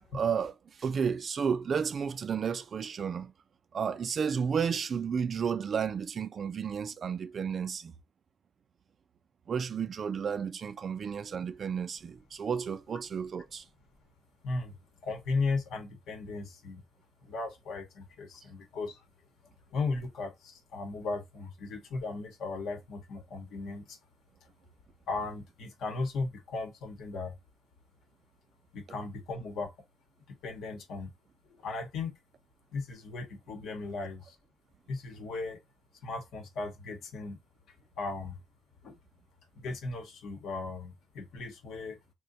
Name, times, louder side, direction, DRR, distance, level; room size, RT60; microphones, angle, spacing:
voice 1, 0.1-0.5 0.8-3.3 3.7-7.9 9.5-13.6, right 6 dB, 50° right, 0.3 m, -32 dB
voice 2, 14.4-14.8 15.0-16.8 17.2-19.0 19.7-24.0 25.1-27.3 28.7-29.7 30.4-31.1 31.6-32.1 32.7-34.4 34.9-35.6 36.0-37.4 38.0-38.4 38.8-39.0 39.6-42.0, left 3 dB, 80° left, 0.9 m, -36 dB
2.6 x 2.1 x 3.9 m
cardioid pair, 90°, 0 cm